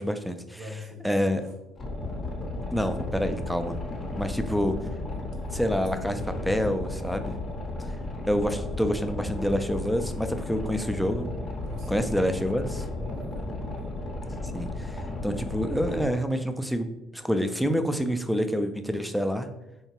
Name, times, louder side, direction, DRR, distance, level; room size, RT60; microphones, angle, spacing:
voice 1, 0.0-0.6 1.0-1.4 2.7-3.7 4.2-4.8 5.5-7.4 7.8-7.9 8.3-11.3 11.9-12.8 14.5-19.5, equal, ahead, 7 dB, 0.3 m, -27 dB
voice 2, 0.5-1.1 1.4-1.5 3.5-3.7 4.1-5.3 5.8-6.5 11.6-12.1 13.0-13.4, left 1 dB, 60° right, 1 dB, 0.6 m, -43 dB
Boat Water vehicle, 1.8-16.0, left 2 dB, 35° left, 0.6 m, -34 dB
2.8 x 2.2 x 2.9 m, 0.93 s
hypercardioid pair, 55°, 0 cm